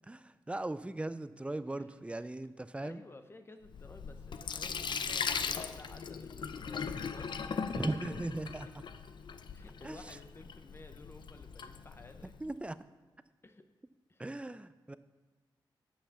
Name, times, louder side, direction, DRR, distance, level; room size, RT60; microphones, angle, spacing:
voice 1, 0.1-3.0 7.8-8.7 9.8-10.0 12.4-12.8 14.2-15.0, right 2 dB, 15° right, 14 dB, 0.4 m, -38 dB
voice 2, 2.8-7.7 9.5-12.4 13.4-13.7 14.1-14.3, left 2 dB, 30° left, 8 dB, 0.7 m, -54 dB
Sink (filling or washing), 3.6-12.4, left 6 dB, 65° left, 0.5 m, -39 dB
8.6 x 5.7 x 7.1 m, 1.2 s
wide cardioid pair, 100°, 8 cm